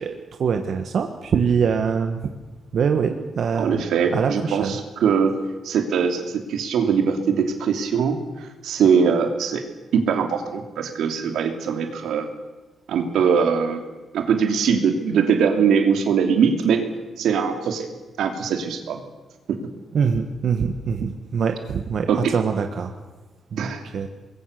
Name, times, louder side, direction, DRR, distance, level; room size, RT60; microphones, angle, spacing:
voice 1, 0.0-2.2 2.7-3.9 4.1-4.8 19.9-22.9 23.5-24.1, right 6 dB, 60° right, 6 dB, 1.6 m, -24 dB
voice 2, 3.6-5.4 5.6-8.2 8.6-9.6 9.9-12.3 12.9-13.8 14.1-16.8 17.2-17.9 18.2-19.0 19.5-19.6 22.1-22.3 23.6-23.8, right 6 dB, 90° right, 6 dB, 2.9 m, -21 dB
25.0 x 21.5 x 6.8 m, 1.2 s
cardioid pair, 115°, 0 cm